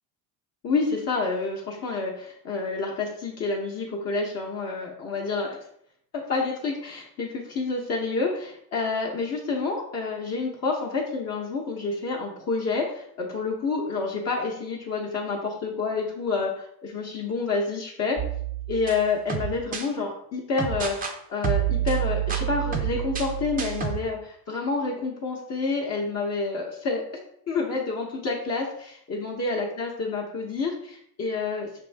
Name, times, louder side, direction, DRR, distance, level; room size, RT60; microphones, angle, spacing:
voice 1, 0.6-5.6 6.1-18.2 18.7-27.2 27.5-31.7, left 4 dB, 40° left, -1 dB, 0.8 m, -28 dB
sound 1, 18.2-19.9 20.6-21.1 21.4-24.0, right 10 dB, 20° right, 0.4 m, -28 dB
6.0 x 2.6 x 3.2 m, 0.68 s
cardioid pair, 145°, 41 cm